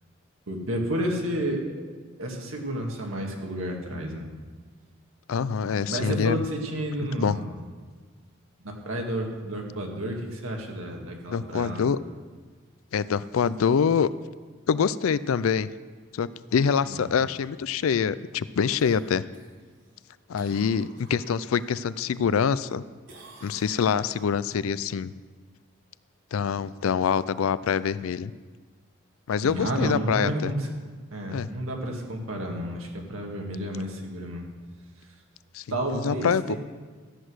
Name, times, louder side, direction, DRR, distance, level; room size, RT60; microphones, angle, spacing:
voice 1, 0.5-1.7 2.2-4.3 5.9-7.6 8.6-11.9 16.9-17.1 20.3-20.5 29.4-30.7 31.1-34.4 35.7-36.6, right 1 dB, 90° right, 1 dB, 2.0 m, -31 dB
voice 2, 5.3-6.4 7.0-7.4 11.3-12.0 12.9-14.1 14.7-15.7 16.1-19.2 20.3-22.8 23.4-25.1 26.3-28.3 29.3-30.3 31.3-31.5 35.5-35.6 36.0-36.6, left 6 dB, 85° left, 17 dB, 0.4 m, -25 dB
Cough, 18.8-21.8 22.2-22.8 23.1-24.8 29.2-29.3, right 3 dB, 65° right, 3.4 m, -52 dB
13.0 x 8.1 x 6.3 m, 1.5 s
head